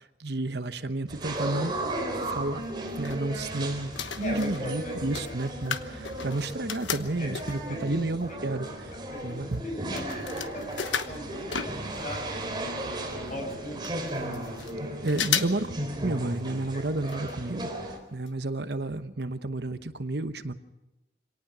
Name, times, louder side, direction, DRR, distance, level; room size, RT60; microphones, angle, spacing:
voice 1, 0.0-1.8 2.2-2.6 2.9-8.9 9.2-9.7 15.0-20.5, right 2 dB, 55° right, 11 dB, 1.0 m, -31 dB
sound 1, 1.1-18.0, right 1 dB, 25° right, 3.7 m, -35 dB
sound 2, 2.6-3.6 3.9-7.8 8.4-8.5 8.6-12.3 12.5-12.6 12.8-12.9 13.5-13.6 13.8-14.7 15.1-15.7 16.0-16.1 17.1-17.4 17.7-17.8 18.3-18.4 18.7-18.8, left 8 dB, 75° left, 1.2 m, -34 dB
voice 2, 4.2-5.4 7.2-7.3 7.7-8.0 8.3-8.4 9.1-9.4 9.6-10.8 11.1-12.7 13.2-14.0 16.7-16.8, left 1 dB, 40° left, 1 dB, 7.6 m, -39 dB
25.0 x 18.5 x 6.2 m, 1.0 s
head